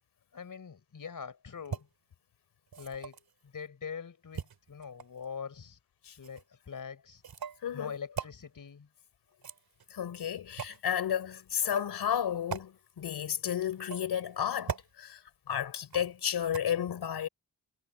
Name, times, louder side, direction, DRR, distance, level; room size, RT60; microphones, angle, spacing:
voice 1, 0.3-1.9 2.8-3.2 3.5-5.8 6.2-7.2 7.7-8.9, left 6 dB, 55° left, 4.6 m, -43 dB
sound 1, 1.6-1.8 2.7-3.3 4.3-5.2 6.2-6.4 7.2-7.6 8.2-8.3 9.3-9.9 10.6-10.8 11.6-11.9 12.5-12.7 13.7-14.2 14.7-14.9 15.9-16.2 16.5-16.6, right 6 dB, 70° right, 2.6 m, -39 dB
voice 2, 7.6-7.9 9.9-15.2 15.5-17.3, left 9 dB, 85° left, 3.8 m, -32 dB
cardioid pair, 65°, 38 cm